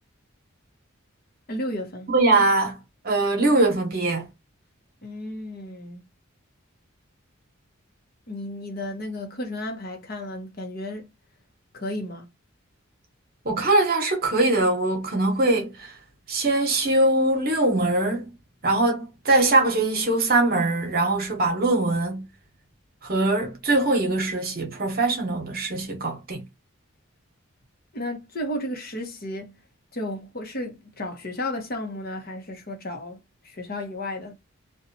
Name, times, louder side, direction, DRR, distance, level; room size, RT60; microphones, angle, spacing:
voice 1, 1.5-2.1 5.0-6.0 8.3-11.1 11.7-12.3 27.9-29.6 29.9-34.3, left 1 dB, 45° left, 0.8 m, -33 dB
voice 2, 2.1-4.3 13.4-16.0 16.3-18.3 18.6-22.3 23.0-26.4, right 2 dB, 45° right, 0.9 m, -22 dB
2.8 x 2.2 x 2.5 m
head